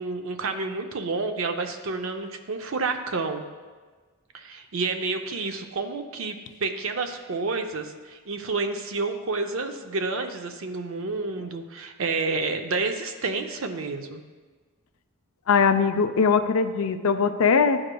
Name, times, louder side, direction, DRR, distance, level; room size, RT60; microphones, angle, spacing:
voice 1, 0.0-3.4 4.3-6.4 6.6-14.2, right 3 dB, 65° right, 6 dB, 0.6 m, -29 dB
voice 2, 15.5-17.8, left 5 dB, 75° left, 9 dB, 0.4 m, -21 dB
12.5 x 4.8 x 2.2 m, 1.4 s
head